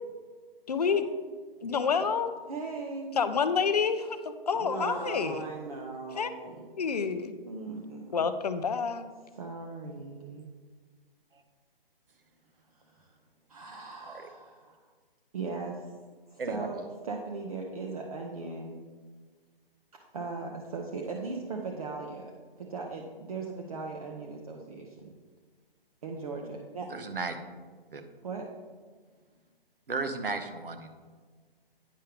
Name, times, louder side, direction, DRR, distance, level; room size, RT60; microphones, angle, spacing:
voice 1, 0.7-1.0 1.6-2.3 3.2-5.4 6.2-6.3 6.7-7.3 8.1-9.1, left 6 dB, 45° left, 11 dB, 0.5 m, -28 dB
voice 2, 2.5-3.2 4.5-6.7 7.4-8.2 9.3-10.5 13.0-13.1 13.5-14.8 15.3-16.0 16.3-18.8 19.9-25.1 26.0-26.9 28.2-28.5, right 4 dB, 40° right, 0 dB, 0.7 m, -38 dB
voice 3, 26.9-27.4 27.9-28.0 29.9-30.9, right 4 dB, 65° right, 7 dB, 0.9 m, -34 dB
9.3 x 5.4 x 3.4 m, 1.5 s
figure-of-eight pair, 135°, 30 cm